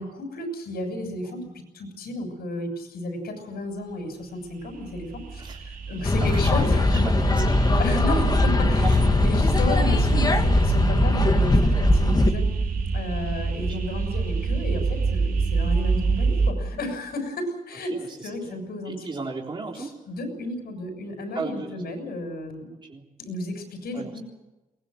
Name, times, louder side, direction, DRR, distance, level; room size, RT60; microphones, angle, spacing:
voice 1, 0.0-7.0 7.8-12.5 12.9-17.9 18.2-19.1 19.8-22.7 23.2-24.2, left 1 dB, 90° left, 6 dB, 7.0 m, -33 dB
sound 1, 4.5-16.5, right 4 dB, 65° right, 4.1 m, -26 dB
sound 2, 6.0-12.3, left 3 dB, 25° left, 1.9 m, -21 dB
voice 2, 6.2-7.8 8.1-8.4 8.8-9.1 9.5-9.6 13.6-13.8 17.9-18.6 18.9-20.0 21.3-21.8 22.7-23.1 23.9-24.2, right 3 dB, 30° right, 0 dB, 3.7 m, -36 dB
22.5 x 20.5 x 7.8 m, 1.0 s
wide cardioid pair, 135°, 16 cm